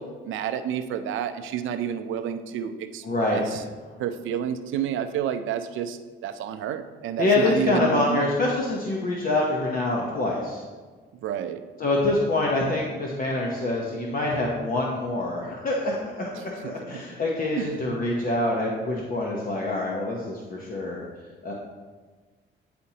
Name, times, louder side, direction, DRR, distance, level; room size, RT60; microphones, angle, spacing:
voice 1, 0.0-3.6 4.0-8.3 11.2-11.6 12.0-12.2 16.4-17.1 17.5-17.8, right 9 dB, 80° right, 9 dB, 0.5 m, -30 dB
voice 2, 3.0-3.4 7.2-10.6 11.8-21.1 21.4-21.5, left 2 dB, 45° left, -2 dB, 0.9 m, -25 dB
9.5 x 4.3 x 2.8 m, 1.4 s
cardioid pair, 90°, 20 cm